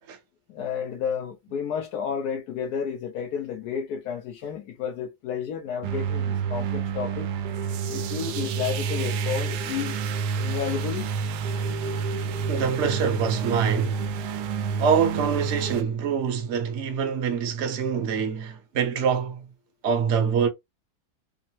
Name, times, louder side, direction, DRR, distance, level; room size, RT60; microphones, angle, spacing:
voice 1, 0.5-7.3 7.9-10.0 10.4-11.1, left 7 dB, 75° left, 1.2 m, -31 dB
sound 1, 5.8-15.8, right 6 dB, 85° right, 1.2 m, -29 dB
voice 2, 12.5-14.0 14.8-19.5 19.8-20.5, right 7 dB, 55° right, 0.9 m, -25 dB
3.5 x 2.0 x 2.8 m
omnidirectional pair, 1.7 m